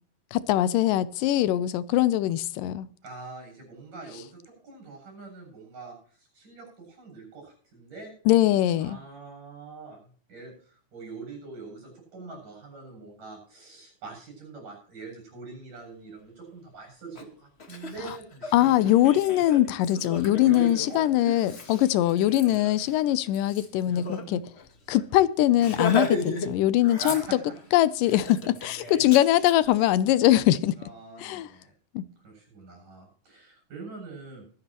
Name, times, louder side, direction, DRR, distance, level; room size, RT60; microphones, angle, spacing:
voice 1, 0.3-2.9 8.3-9.0 18.5-24.4 24.9-27.4 27.7-30.8 31.2-31.5 32.0-32.1, left 13 dB, 90° left, 2.4 m, -22 dB
voice 2, 3.0-8.1 8.8-18.8 20.4-21.3 24.1-24.4 27.0-27.4 30.8-31.7 32.2-34.5, right 4 dB, 75° right, 9.0 m, -44 dB
Laughter, 17.1-17.2 17.6-24.2 24.6-24.7 25.0-25.2 25.6-26.5 26.8-27.6 28.1-29.5, left 3 dB, 35° left, 1.0 m, -34 dB
23.0 x 9.8 x 3.1 m
omnidirectional pair, 3.7 m